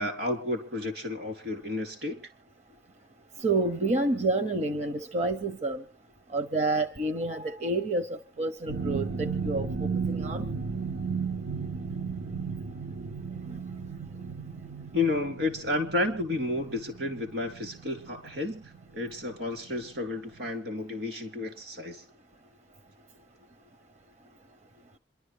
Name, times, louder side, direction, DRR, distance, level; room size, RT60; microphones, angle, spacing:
voice 1, 0.0-2.2 14.9-22.0, left 2 dB, 70° right, 3.9 m, -31 dB
voice 2, 3.4-5.8 6.3-10.5, right 2 dB, 40° right, 0.7 m, -29 dB
sound 1, 8.7-19.4 19.7-20.0 20.4-20.5, right 5 dB, 85° right, 0.8 m, -35 dB
27.0 x 12.0 x 3.3 m
head